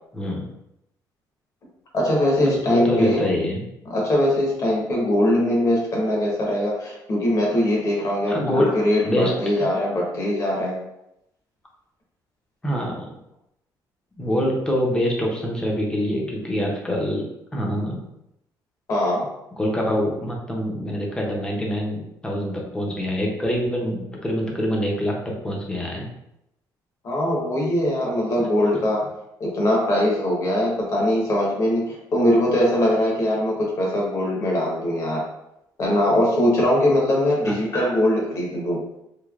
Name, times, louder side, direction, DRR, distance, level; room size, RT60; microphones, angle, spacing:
voice 1, 0.1-0.4 2.4-3.6 8.3-8.7 9.0-9.3 12.6-13.1 14.2-17.2 17.5-18.0 19.6-25.2 25.4-26.1 28.4-28.5 37.4-37.5, equal, 10° left, -1 dB, 0.6 m, -25 dB
voice 2, 1.9-3.3 3.9-10.8 18.9-19.3 27.0-29.0 29.4-35.2 35.8-38.8, left 1 dB, 45° left, -2 dB, 1.0 m, -21 dB
3.2 x 2.7 x 2.4 m, 0.84 s
cardioid pair, 140°, 8 cm